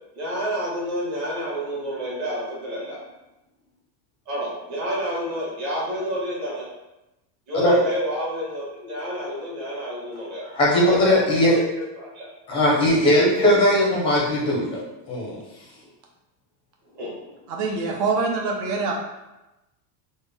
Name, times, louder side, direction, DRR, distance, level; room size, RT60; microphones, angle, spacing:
voice 1, 0.1-3.0 4.3-6.7 7.5-10.5 10.8-11.7 11.9-12.3 15.8-15.9 16.9-17.5, equal, 35° right, -6 dB, 1.3 m, -29 dB
voice 2, 10.5-11.5 12.5-14.8 15.1-15.4, left 1 dB, 10° left, -4 dB, 0.4 m, -19 dB
voice 3, 17.5-18.9, right 4 dB, 75° right, 0 dB, 0.9 m, -24 dB
3.5 x 2.1 x 3.4 m, 0.97 s
cardioid pair, 170°, 48 cm